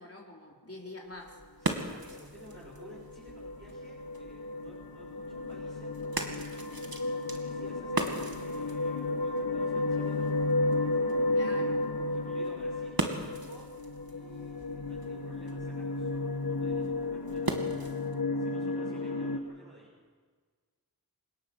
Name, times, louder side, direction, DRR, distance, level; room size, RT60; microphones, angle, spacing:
voice 1, 0.0-1.4 11.3-11.8, left 1 dB, 40° left, -2 dB, 3.9 m, -45 dB
sound 1, 1.0-18.2, right 2 dB, 75° right, 2.3 m, -40 dB
voice 2, 1.6-6.4 7.0-10.3 12.1-13.7 14.0-18.0 18.3-20.0, right 1 dB, 30° right, -6 dB, 6.2 m, -54 dB
sound 2, 2.1-19.4, left 2 dB, 85° left, 1.5 m, -33 dB
28.0 x 18.0 x 6.2 m, 1.5 s
wide cardioid pair, 45°, 36 cm